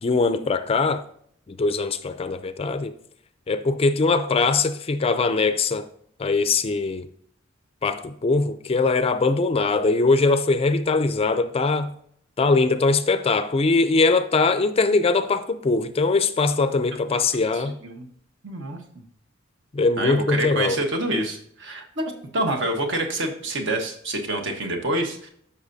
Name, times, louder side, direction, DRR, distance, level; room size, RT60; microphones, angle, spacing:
voice 1, 0.0-1.0 1.5-2.9 3.5-5.9 6.2-7.1 7.8-11.9 12.4-17.8 19.7-20.8, left 3 dB, 30° left, 0.4 m, -21 dB
voice 2, 17.5-18.1 18.4-18.8 20.0-22.0 22.3-25.3, right 1 dB, 65° right, 1.3 m, -27 dB
13.0 x 5.6 x 2.7 m
head